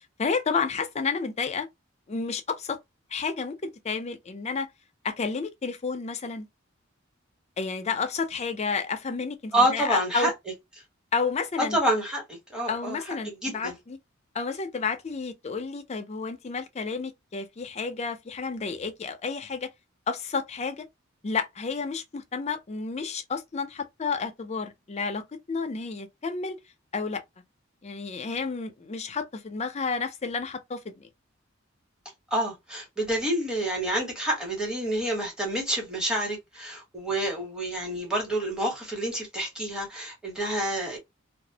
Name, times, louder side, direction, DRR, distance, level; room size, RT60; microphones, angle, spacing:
voice 1, 0.2-1.7 2.1-2.8 3.1-4.7 5.0-6.5 7.6-10.3 11.1-11.8 12.7-14.0 14.3-19.7 20.1-20.9 21.2-25.2 25.5-26.6 26.9-27.2 27.8-31.1, left 5 dB, 35° left, 0.4 m, -31 dB
voice 2, 9.5-10.3 11.6-13.8 32.3-41.0, right 1 dB, 5° right, 1.0 m, -28 dB
2.3 x 2.0 x 2.6 m
head